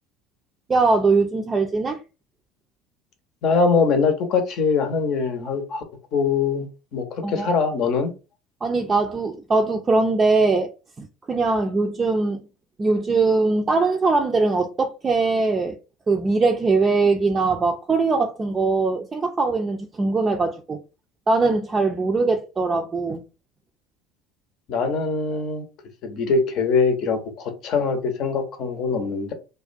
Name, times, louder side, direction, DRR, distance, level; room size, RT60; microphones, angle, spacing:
voice 1, 0.7-2.0 7.2-7.5 8.6-10.7 11.0-12.4 12.8-15.8 16.1-20.8 21.3-23.2, right 3 dB, 30° right, 0.4 m, -21 dB
voice 2, 3.4-5.8 6.1-8.1 24.7-25.6 26.0-29.3, left 5 dB, 55° left, 0.7 m, -22 dB
2.4 x 2.1 x 2.5 m
hypercardioid pair, 70°, 0 cm